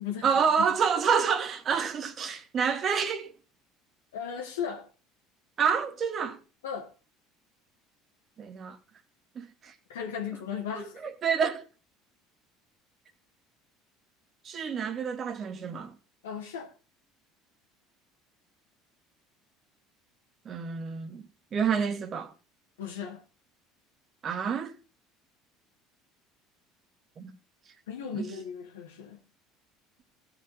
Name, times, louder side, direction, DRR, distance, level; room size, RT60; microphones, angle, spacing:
voice 1, 0.2-3.3 5.6-6.4 8.4-8.8 9.4-9.7 10.7-11.7 14.4-15.9 20.5-21.2 21.5-22.3 24.2-24.7 27.2-27.3 28.1-28.3, right 6 dB, 40° right, 1.8 m, -28 dB
voice 2, 4.1-4.9 6.6-6.9 9.9-11.0 16.2-16.7 22.8-23.2 27.9-29.2, left 7 dB, 80° left, 1.7 m, -36 dB
15.5 x 5.2 x 5.5 m
hypercardioid pair, 70°, 0 cm